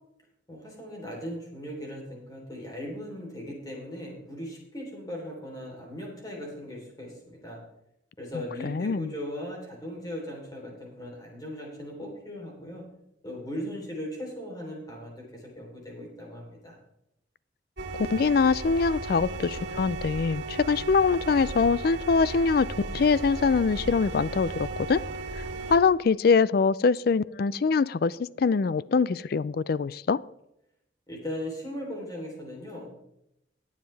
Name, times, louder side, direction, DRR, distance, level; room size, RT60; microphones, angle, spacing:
voice 1, 0.5-7.6 8.2-12.8 13.2-16.8 31.1-32.9, equal, 20° left, -1 dB, 3.6 m, -38 dB
voice 2, 8.6-9.1 17.9-22.7 22.9-25.0 25.4-25.5 25.7-30.2, left 5 dB, 55° left, 20 dB, 0.4 m, -23 dB
sound 1, 17.8-25.8, right 2 dB, 65° right, 2.5 m, -35 dB
20.0 x 7.4 x 3.4 m, 0.83 s
head